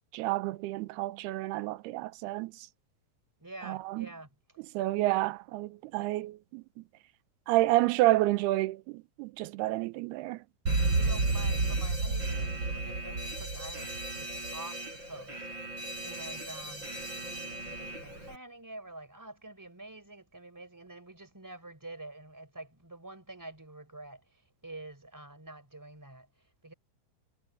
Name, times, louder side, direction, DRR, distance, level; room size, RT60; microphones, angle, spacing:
voice 1, 0.1-2.7 3.6-4.1 4.7-6.8 7.5-10.4, right 17 dB, 85° right, 2.7 m, -29 dB
voice 2, 3.4-4.3 6.0-6.1 10.9-16.9 17.2-24.2 24.6-26.3 26.6-26.7, right 2 dB, 5° right, 4.4 m, -47 dB
Alarm, 10.7-18.4, right 3 dB, 30° right, 5.1 m, -33 dB
omnidirectional pair, 4.6 m